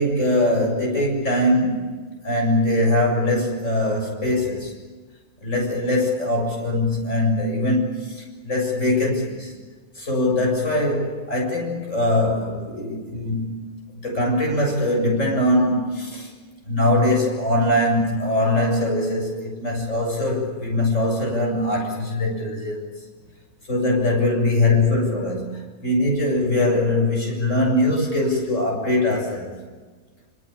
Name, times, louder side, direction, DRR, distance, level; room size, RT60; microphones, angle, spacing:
voice 1, 0.0-1.9 2.2-4.7 5.4-9.5 10.0-13.6 14.0-16.3 16.6-23.0 23.7-29.5, left 1 dB, 55° left, 7.6 m, -22 dB
27.5 x 27.5 x 7.2 m
omnidirectional pair, 1.6 m